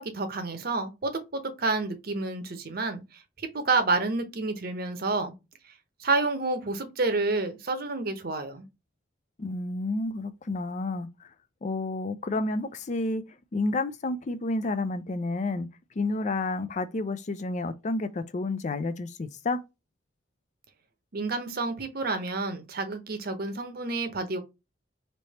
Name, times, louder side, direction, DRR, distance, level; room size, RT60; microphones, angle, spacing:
voice 1, 0.0-3.0 3.4-5.3 6.0-8.7 21.1-24.4, right 3 dB, 50° right, 0.8 m, -29 dB
voice 2, 9.4-11.3 11.6-13.2 13.5-15.7 16.0-19.6, left 2 dB, 40° left, 0.4 m, -30 dB
3.3 x 2.8 x 4.1 m
head